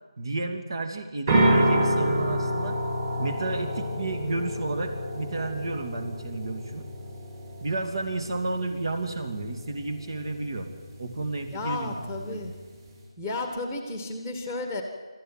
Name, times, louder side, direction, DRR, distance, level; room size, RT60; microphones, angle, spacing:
voice 1, 0.2-2.8 3.2-6.9 7.6-10.7 11.0-12.4, right 2 dB, 55° right, 5 dB, 2.8 m, -31 dB
sound 1, 1.3-13.0, right 1 dB, 30° right, 5.6 m, -29 dB
voice 2, 11.5-12.5 13.2-14.8, left 2 dB, 5° right, 4 dB, 1.7 m, -33 dB
25.0 x 13.5 x 9.3 m, 1.4 s
figure-of-eight pair, 165°, 3 cm